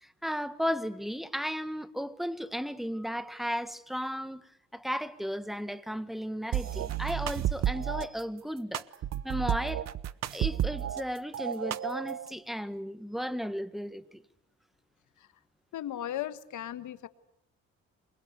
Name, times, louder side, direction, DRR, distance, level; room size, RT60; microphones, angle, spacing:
voice 1, 0.0-4.4 4.7-8.8 9.2-9.9 10.3-14.2, equal, ahead, 1.6 m, -35 dB
sound 1, 6.5-8.1 8.7-11.0 11.3-12.3, right 10 dB, 60° right, 0.9 m, -31 dB
voice 2, 15.7-17.1, left 11 dB, 80° left, 1.6 m, -36 dB
28.0 x 22.5 x 8.2 m
cardioid pair, 90°, 30 cm